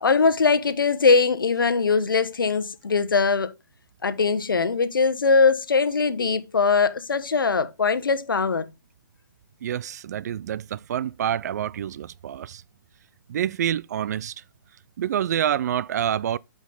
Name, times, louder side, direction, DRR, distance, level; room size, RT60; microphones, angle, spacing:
voice 1, 0.0-3.5 4.0-8.7, left 4 dB, 90° left, 1.0 m, -21 dB
voice 2, 9.6-12.6 13.3-14.3 15.0-16.4, right 10 dB, 55° right, 0.4 m, -27 dB
8.2 x 5.1 x 3.8 m
hypercardioid pair, 150°, 11 cm